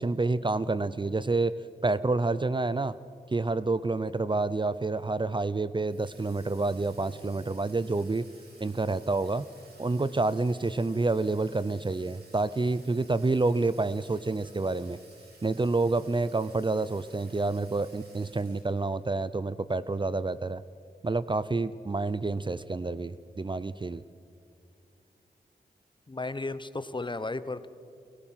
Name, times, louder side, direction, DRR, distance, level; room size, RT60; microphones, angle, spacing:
voice 1, 0.0-1.5 1.8-2.9 3.3-8.2 8.6-9.5 9.8-15.0 15.4-20.6 21.0-24.0, right 3 dB, 30° right, 16 dB, 0.6 m, -28 dB
Water tap faucet / Sink (filling or washing), 5.8-19.0, right 3 dB, 75° right, 5.6 m, -56 dB
voice 2, 26.1-27.7, left 2 dB, 30° left, 13 dB, 1.0 m, -34 dB
30.0 x 17.5 x 5.8 m, 2.5 s
cardioid pair, 50°, 17 cm